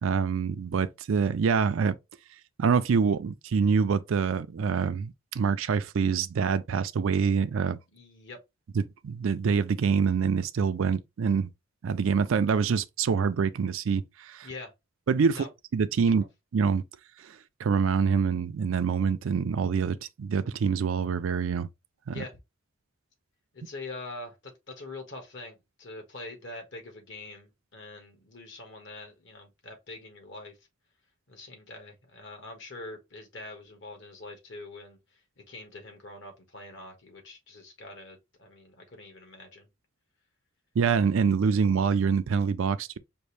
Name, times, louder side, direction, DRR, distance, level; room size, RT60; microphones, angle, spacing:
voice 1, 0.0-2.0 2.6-7.8 8.7-11.5 11.8-14.5 15.1-15.4 15.7-16.2 16.5-16.8 17.2-21.7 22.1-22.2 40.8-43.0, right 6 dB, 75° right, 0.4 m, -26 dB
voice 2, 7.9-8.4 14.4-14.7 15.3-15.5 16.0-16.3 22.1-22.4 23.5-30.6 31.3-35.0 35.5-39.7, left 2 dB, 60° left, 1.4 m, -44 dB
5.2 x 2.6 x 3.2 m
head